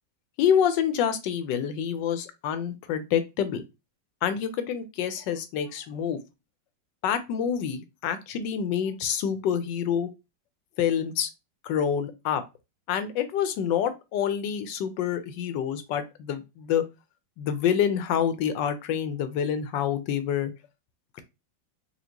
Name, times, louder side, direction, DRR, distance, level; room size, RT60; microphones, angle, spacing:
voice 1, 0.4-3.6 4.2-6.2 7.0-10.1 10.8-11.3 11.6-12.4 12.9-16.8 17.4-20.5, left 8 dB, 80° left, 1.3 m, -27 dB
4.3 x 2.5 x 2.8 m
omnidirectional pair, 2.0 m